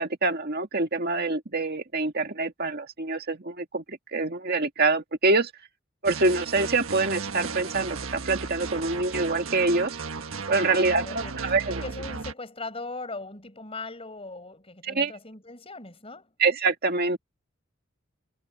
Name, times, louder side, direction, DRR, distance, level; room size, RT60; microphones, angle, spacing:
voice 1, 0.0-5.5 6.0-10.0 10.5-11.8 14.8-15.1 16.4-17.2, right 3 dB, 50° right, 2.1 m, -25 dB
sound 1, 6.0-12.3, right 4 dB, 85° right, 1.4 m, -35 dB
voice 2, 10.5-16.3, left 3 dB, 30° left, 5.7 m, -39 dB
head